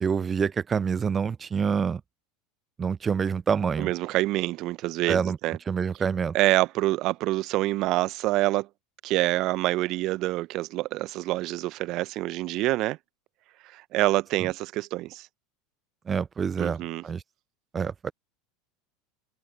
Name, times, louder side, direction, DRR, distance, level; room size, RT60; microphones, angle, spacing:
voice 1, 0.0-2.0 2.8-3.9 5.1-5.4 5.7-6.3 16.1-17.2 17.7-18.1, right 6 dB, 25° right, 0.5 m, -26 dB
voice 2, 3.8-5.6 6.3-8.7 9.0-13.0 13.6-15.3 16.6-17.0, right 18 dB, 50° right, 1.0 m, -26 dB
figure-of-eight pair, 80°, 0 cm